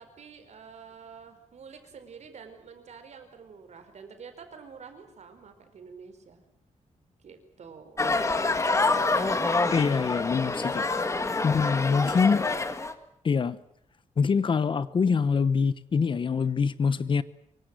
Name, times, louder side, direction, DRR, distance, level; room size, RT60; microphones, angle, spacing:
voice 1, 0.0-6.4 7.2-8.2 8.7-10.1, right 6 dB, 65° right, 8 dB, 4.6 m, -47 dB
sound 1, 8.0-12.9, left 3 dB, 25° left, 1.8 m, -26 dB
voice 2, 9.7-10.9 11.4-12.5 13.2-13.6 14.2-17.2, left 5 dB, 40° left, 16 dB, 0.9 m, -24 dB
25.0 x 24.0 x 7.8 m, 0.73 s
wide cardioid pair, 165°, 12 cm